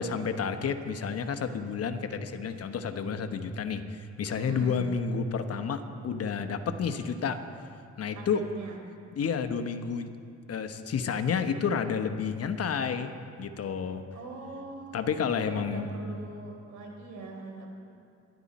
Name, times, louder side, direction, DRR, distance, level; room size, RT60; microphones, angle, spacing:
voice 1, 0.0-7.4 8.0-8.4 9.1-10.1 10.5-13.1 13.4-14.0 14.9-15.9, left 6 dB, 55° left, 8 dB, 1.1 m, -30 dB
voice 2, 4.4-4.8 8.1-8.8 14.1-17.7, right 3 dB, 75° right, 0 dB, 4.1 m, -42 dB
25.0 x 11.5 x 4.2 m, 2.4 s
cardioid pair, 90°, 30 cm